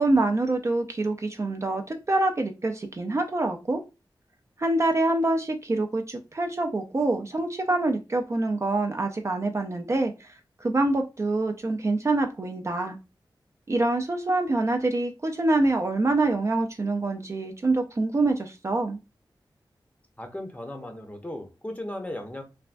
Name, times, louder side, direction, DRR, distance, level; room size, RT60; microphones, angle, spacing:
voice 1, 0.0-3.8 4.6-10.3 10.6-13.0 13.7-19.0, right 2 dB, 35° right, 5 dB, 0.4 m, -25 dB
voice 2, 20.2-22.4, left 1 dB, 15° left, 4 dB, 0.6 m, -36 dB
3.3 x 2.2 x 2.5 m, 0.27 s
wide cardioid pair, 100°, 8 cm